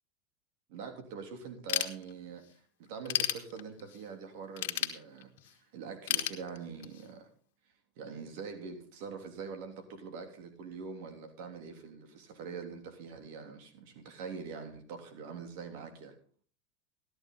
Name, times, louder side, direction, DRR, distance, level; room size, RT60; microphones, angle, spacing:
voice 1, 0.7-7.3 8.0-16.2, right 5 dB, 70° right, 6 dB, 3.1 m, -44 dB
Ratchet pawl / Tools, 1.7-2.5 2.9-4.0 4.6-5.5 6.1-7.1, left 13 dB, 80° left, 1.5 m, -32 dB
13.5 x 13.5 x 3.9 m, 0.43 s
supercardioid pair, 120°, 0 cm